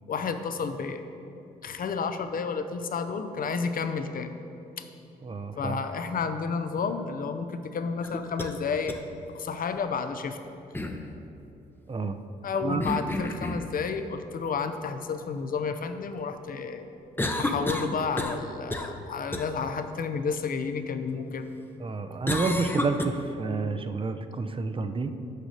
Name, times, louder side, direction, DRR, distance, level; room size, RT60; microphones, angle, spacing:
voice 1, 0.1-1.0 1.6-4.3 4.8-4.9 5.6-9.0 9.3-10.4 12.4-16.9 17.4-21.5, left 5 dB, 50° left, 8 dB, 0.7 m, -31 dB
voice 2, 5.2-5.8 11.9-12.2 12.6-12.8 21.8-25.1, right 3 dB, 30° right, 9 dB, 0.6 m, -29 dB
sound 1, 8.0-8.5 8.9-9.0 10.7-11.0 12.8-13.7 17.2-18.5 18.7-19.0 19.3-19.5 22.3-23.1, left 1 dB, 10° left, 0.7 m, -30 dB
6.6 x 5.1 x 6.4 m, 2.8 s
hypercardioid pair, 50°, 18 cm